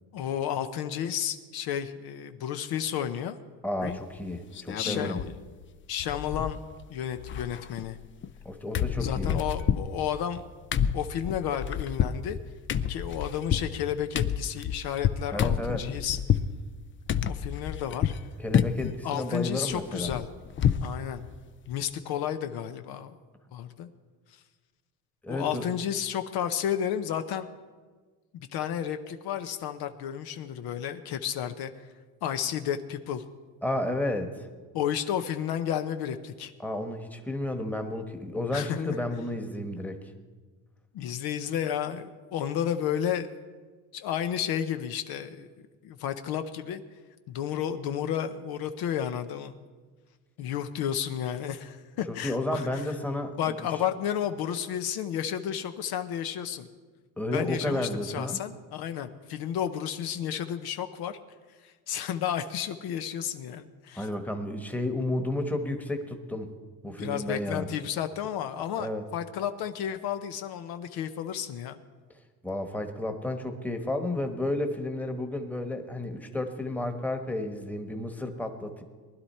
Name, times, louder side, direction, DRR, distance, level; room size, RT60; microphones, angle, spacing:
voice 1, 0.1-3.4 4.7-5.4 5.9-6.6 6.9-8.0 9.0-10.5 10.9-12.4 12.9-16.2 17.3-18.1 19.0-20.3 20.8-21.2 21.7-23.2 23.5-23.9 24.3-24.4 25.3-27.5 28.3-31.8 32.2-33.2 34.7-36.5 38.5-39.0 40.9-43.3 43.9-45.5 45.8-46.8 47.3-49.5 50.4-52.8 53.4-56.7 57.3-61.2 61.6-64.1 67.0-71.8, left 9 dB, 65° left, 8 dB, 0.9 m, -32 dB
voice 2, 3.6-5.2 8.4-9.4 15.3-15.9 18.4-20.1 25.2-25.6 33.6-34.5 36.6-40.0 52.1-53.7 57.2-58.4 63.9-66.5 66.8-67.7 68.8-69.0 72.4-78.8, left 1 dB, 5° left, 5 dB, 1.3 m, -32 dB
sound 1, 3.8-4.2 4.5-5.3 5.6-5.7 6.0-6.8 7.1-8.5 8.7-16.5 17.1-18.2 18.5-19.0 19.3-20.9 21.3-21.4 21.7-21.9, left 9 dB, 30° left, 0.5 m, -29 dB
19.5 x 11.5 x 4.3 m, 1.4 s
cardioid pair, 115°, 40 cm